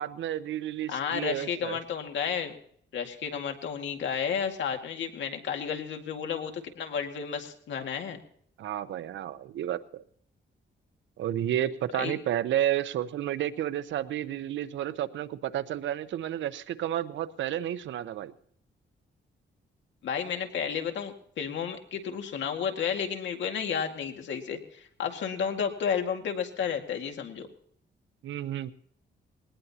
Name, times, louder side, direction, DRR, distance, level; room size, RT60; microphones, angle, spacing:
voice 1, 0.0-1.8 8.6-9.8 11.2-18.3 28.2-28.7, right 11 dB, 90° right, 13 dB, 0.8 m, -31 dB
voice 2, 0.9-2.6 2.9-8.2 11.9-12.2 20.0-27.5, left 7 dB, 80° left, 4 dB, 2.1 m, -32 dB
20.0 x 19.0 x 2.9 m, 0.64 s
cardioid pair, 110°, 19 cm